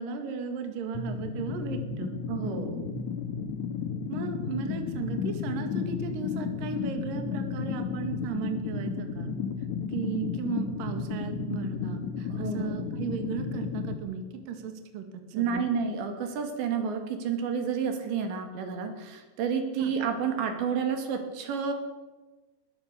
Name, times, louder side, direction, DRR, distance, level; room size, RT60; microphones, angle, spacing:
voice 1, 0.0-2.1 4.1-9.3 9.9-15.0 15.4-15.7 19.8-19.9, right 5 dB, 55° right, 5 dB, 3.4 m, -35 dB
sound 1, 0.9-13.9, left 6 dB, 60° left, 2.1 m, -33 dB
voice 2, 2.3-2.9 12.3-12.9 15.3-21.7, right 6 dB, 70° right, 5 dB, 4.3 m, -30 dB
21.0 x 20.0 x 6.7 m, 1.2 s
omnidirectional pair, 5.3 m